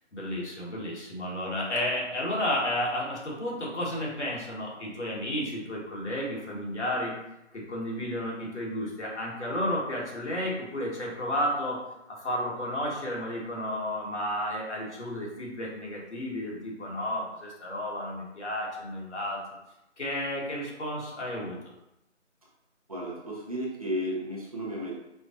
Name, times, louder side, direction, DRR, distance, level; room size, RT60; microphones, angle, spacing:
voice 1, 0.1-7.2 7.5-11.8 12.1-19.4 20.0-21.7, left 1 dB, 70° left, -3 dB, 1.5 m, -32 dB
voice 2, 22.9-24.9, equal, 30° right, -4 dB, 0.7 m, -33 dB
5.0 x 2.3 x 2.5 m, 0.88 s
figure-of-eight pair, 165°, 36 cm